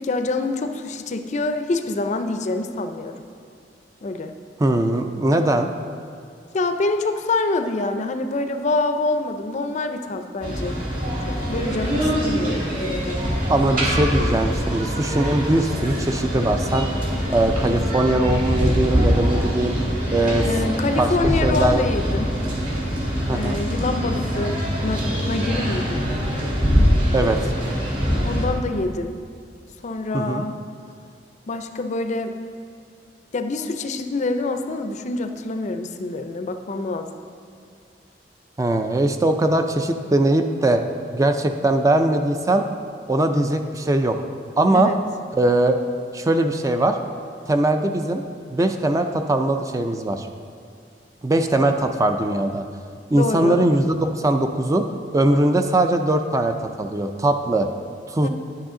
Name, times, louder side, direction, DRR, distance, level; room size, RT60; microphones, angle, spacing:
voice 1, 0.0-3.1 4.0-4.3 6.5-10.8 11.3-13.2 20.5-22.3 23.3-26.0 28.2-29.1 29.8-30.6 31.5-32.3 33.3-37.1 44.7-45.0 53.1-53.6 58.2-58.3, left 2 dB, 40° left, 8 dB, 0.5 m, -26 dB
voice 2, 4.6-5.7 13.5-16.9 17.3-19.7 20.1-20.5 21.0-21.1 21.4-21.9 23.3-23.6 27.1-27.4 30.1-30.4 38.6-40.8 41.1-42.7 43.1-44.2 44.6-44.9 45.3-45.8 46.1-47.0 47.5-48.2 48.5-50.3 51.2-52.6 53.1-54.8 55.1-57.7 58.1-58.3, right 1 dB, 20° right, 6 dB, 0.4 m, -20 dB
sound 1, 10.4-28.4, equal, 50° right, 2.3 m, -23 dB
9.9 x 8.7 x 3.7 m, 2.2 s
head